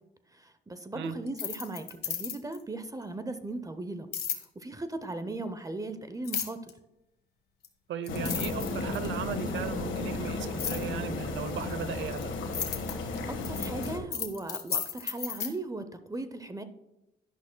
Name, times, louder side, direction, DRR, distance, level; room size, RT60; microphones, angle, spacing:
voice 1, 0.4-4.1 4.6-6.6 13.3-16.6, right 2 dB, 15° right, 0.7 m, -37 dB
sound 1, 1.3-2.6 4.1-4.4 6.2-6.7 7.6-7.7 8.1-9.2 10.6-10.9 11.7-15.5, left 7 dB, 55° left, 1.4 m, -34 dB
voice 2, 7.9-12.3, right 8 dB, 70° right, 0.7 m, -37 dB
sound 2, 8.1-14.0, left 3 dB, 75° left, 1.5 m, -34 dB
11.0 x 10.5 x 2.2 m
cardioid pair, 90°, 20 cm